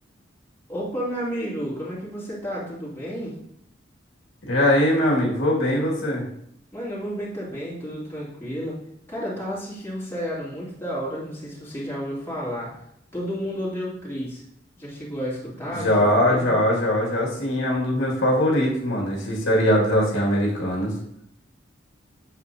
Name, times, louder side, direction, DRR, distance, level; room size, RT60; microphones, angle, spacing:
voice 1, 0.7-3.4 6.7-8.8 9.1-12.7 13.1-14.4 14.8-16.5, equal, 15° left, -8 dB, 2.6 m, -31 dB
voice 2, 4.5-6.2 15.7-20.9, left 1 dB, 75° left, -2 dB, 2.2 m, -21 dB
8.6 x 7.2 x 2.8 m, 0.74 s
head